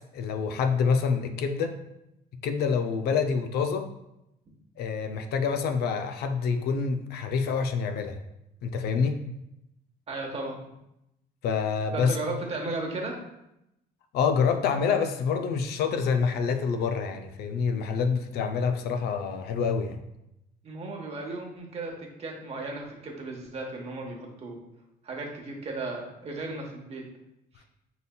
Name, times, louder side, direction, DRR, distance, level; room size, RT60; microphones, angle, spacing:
voice 1, 0.0-1.8 2.4-3.9 4.8-8.2 8.6-9.2 11.4-12.2 14.1-20.0, left 5 dB, 70° left, 7 dB, 0.5 m, -27 dB
voice 2, 10.1-10.6 11.9-13.1 20.6-24.6 25.0-27.0, right 2 dB, 35° right, 0 dB, 1.1 m, -35 dB
5.3 x 3.9 x 2.2 m, 0.86 s
cardioid pair, 110°, 17 cm